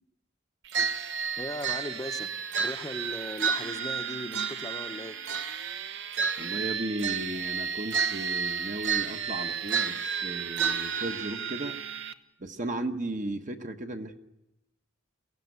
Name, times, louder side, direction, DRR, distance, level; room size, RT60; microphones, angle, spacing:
sound 1, 0.7-12.1, right 6 dB, 60° right, 1.0 m, -31 dB
voice 1, 1.4-2.3 2.6-5.2, left 1 dB, 20° left, 6 dB, 0.9 m, -38 dB
voice 2, 6.4-11.8 12.4-14.2, right 1 dB, 35° right, 6 dB, 1.1 m, -35 dB
22.5 x 16.0 x 9.5 m, 0.92 s
head